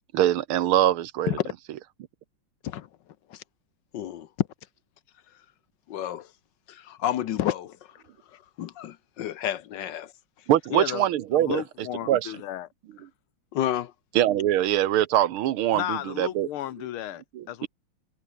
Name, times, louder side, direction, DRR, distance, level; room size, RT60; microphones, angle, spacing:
voice 1, 0.1-1.4 10.5-11.6 12.1-12.3 14.2-16.5 17.3-17.7, right 12 dB, 85° right, 1.8 m, -23 dB
voice 2, 3.9-4.5 5.9-6.3 6.7-8.0 8.3-10.1 13.5-13.9, left 11 dB, 65° left, 1.4 m, -30 dB
voice 3, 10.7-11.1 11.3-12.7 15.7-17.7, left 13 dB, 85° left, 1.8 m, -33 dB
omnidirectional pair, 2.3 m